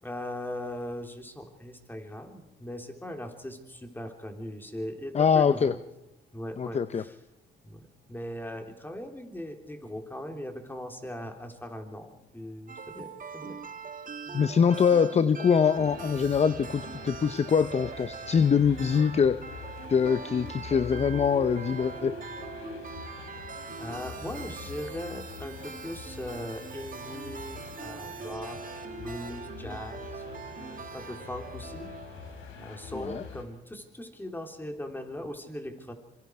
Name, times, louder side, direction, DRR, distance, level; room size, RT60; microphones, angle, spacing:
voice 1, 0.0-5.8 6.3-7.2 7.6-13.6 14.3-14.4 14.9-15.0 23.2-23.5 23.8-30.2 30.9-31.9 32.6-35.9, left 1 dB, 10° left, 4 dB, 3.5 m, -39 dB
voice 2, 5.1-5.7 6.6-7.0 14.3-19.6 19.9-22.2 32.9-33.2, left 6 dB, 35° left, 14 dB, 0.7 m, -24 dB
sound 1, 12.7-32.6, right 6 dB, 45° right, 1.5 m, -42 dB
sound 2, 15.7-33.4, left 6 dB, 90° left, 4.0 m, -44 dB
26.0 x 24.0 x 4.8 m, 0.96 s
cardioid pair, 90°, 20 cm